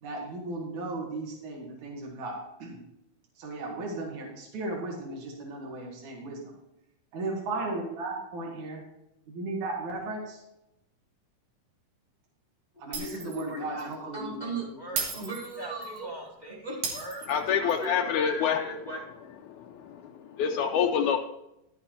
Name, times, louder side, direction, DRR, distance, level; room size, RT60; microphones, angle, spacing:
voice 1, 0.0-2.8 3.4-6.4 7.1-8.8 9.3-10.4 12.8-14.5, right 2 dB, 70° right, -2 dB, 3.3 m, -36 dB
voice 2, 12.9-19.0, right 1 dB, 35° left, -4 dB, 0.7 m, -38 dB
Shatter, 12.9-13.5 13.8-13.9 15.0-16.0 16.8-17.8, right 5 dB, 85° right, 3.2 m, -35 dB
voice 3, 17.3-18.6 19.5-21.2, left 7 dB, 80° left, 2 dB, 2.0 m, -27 dB
11.5 x 7.0 x 4.2 m, 0.86 s
omnidirectional pair, 3.6 m